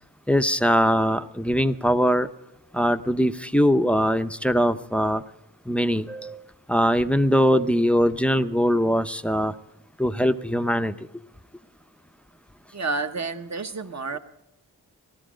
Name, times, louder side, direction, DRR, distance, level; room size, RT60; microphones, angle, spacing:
voice 1, 0.3-2.3 2.7-5.2 5.7-6.4 6.7-9.5 10.0-11.0, equal, 5° left, 11 dB, 0.6 m, -21 dB
voice 2, 12.7-14.2, right 3 dB, 40° right, 8 dB, 1.0 m, -30 dB
16.0 x 12.5 x 5.1 m, 0.89 s
wide cardioid pair, 55°, 41 cm